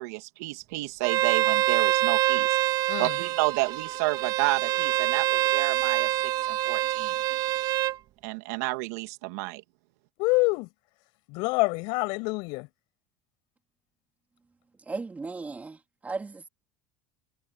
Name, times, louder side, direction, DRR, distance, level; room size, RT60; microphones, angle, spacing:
voice 1, 0.0-2.6 3.0-7.2 8.2-9.6, right 23 dB, 85° right, 2.7 m, -31 dB
Bowed string instrument, 1.0-8.0, right 16 dB, 55° right, 2.4 m, -25 dB
voice 2, 10.2-10.7 11.3-12.7, left 27 dB, 75° left, 7.9 m, -26 dB
voice 3, 14.9-15.8 16.0-16.5, right 3 dB, 20° right, 3.4 m, -35 dB
supercardioid pair, 105°, 8 cm